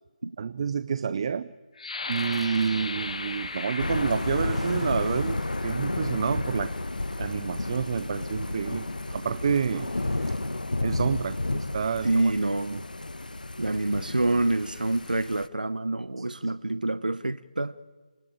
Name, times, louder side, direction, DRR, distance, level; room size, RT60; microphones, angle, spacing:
voice 1, 0.4-1.5 2.1-6.8 7.2-9.9 10.8-12.3 12.7-12.8 16.2-16.3, right 6 dB, 40° right, 0.7 m, -29 dB
sound 1, 1.8-7.4 8.1-8.2 8.7-9.2, left 3 dB, 60° left, 1.9 m, -38 dB
sound 2, 2.0-10.3, right 3 dB, 5° right, 1.9 m, -51 dB
Thunder / Rain, 3.8-15.5, left 2 dB, 85° left, 1.2 m, -31 dB
voice 2, 12.0-12.9 13.6-17.8, right 2 dB, 85° right, 0.9 m, -27 dB
29.0 x 19.5 x 8.9 m
figure-of-eight pair, 155°, 4 cm